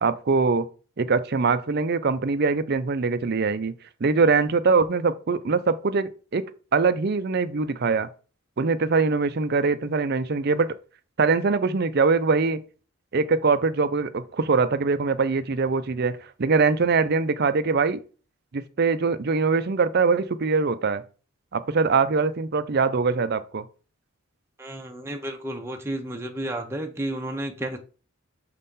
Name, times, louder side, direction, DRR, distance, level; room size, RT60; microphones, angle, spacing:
voice 1, 0.0-0.7 1.0-3.7 4.0-8.1 8.6-10.7 11.2-12.6 13.1-18.0 18.5-21.0 21.5-23.6, right 4 dB, 45° right, 0.5 m, -23 dB
voice 2, 24.6-27.8, right 1 dB, 10° right, 0.7 m, -32 dB
6.5 x 4.1 x 3.7 m
head